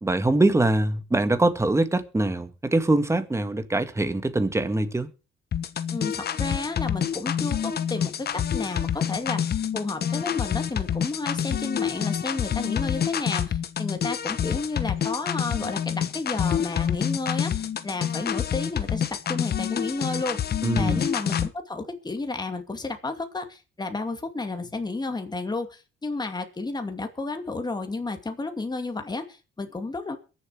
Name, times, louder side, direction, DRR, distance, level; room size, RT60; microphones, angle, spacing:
voice 1, 0.0-5.1 20.6-21.0, right 2 dB, 15° right, 1.8 m, -23 dB
sound 1, 5.5-21.5, left 9 dB, 55° left, 1.1 m, -27 dB
voice 2, 5.9-30.2, left 3 dB, 20° left, 2.4 m, -32 dB
22.5 x 7.6 x 4.9 m
cardioid pair, 90°, 20 cm